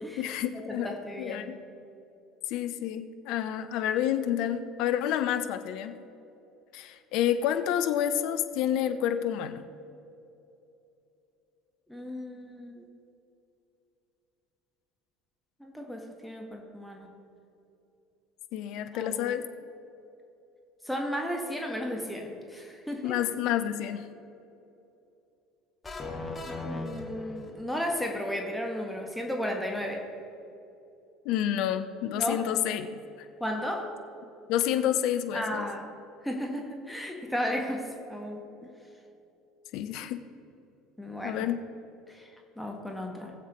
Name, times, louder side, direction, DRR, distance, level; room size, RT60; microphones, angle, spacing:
voice 1, 0.2-1.6 2.5-6.0 6.7-9.6 18.5-19.4 23.0-24.1 31.2-32.9 34.5-35.7 39.7-40.2 41.2-41.6, left 10 dB, 60° left, 9 dB, 0.6 m, -29 dB
voice 2, 0.7-1.6 11.9-12.8 15.6-17.1 18.9-19.3 20.8-23.1 26.5-30.1 32.1-32.4 33.4-34.0 35.3-35.9 36.2-38.7 41.0-41.4 42.1-42.3 42.6-43.3, equal, ahead, 1 dB, 1.6 m, -34 dB
sound 1, 25.8-27.8, left 2 dB, 20° left, 1.9 m, -37 dB
19.0 x 7.4 x 3.1 m, 2.9 s
figure-of-eight pair, 65°, 0 cm